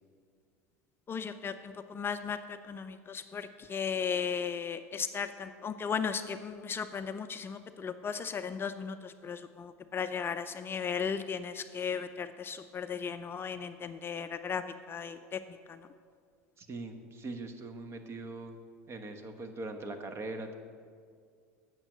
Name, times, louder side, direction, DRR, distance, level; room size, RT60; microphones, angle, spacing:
voice 1, 1.1-2.4 2.7-14.6 14.9-15.4, left 6 dB, 30° left, 10 dB, 0.4 m, -36 dB
voice 2, 16.6-18.6 18.9-20.5, right 2 dB, 30° right, 6 dB, 1.2 m, -41 dB
8.9 x 6.4 x 7.6 m, 2.1 s
hypercardioid pair, 85°, 8 cm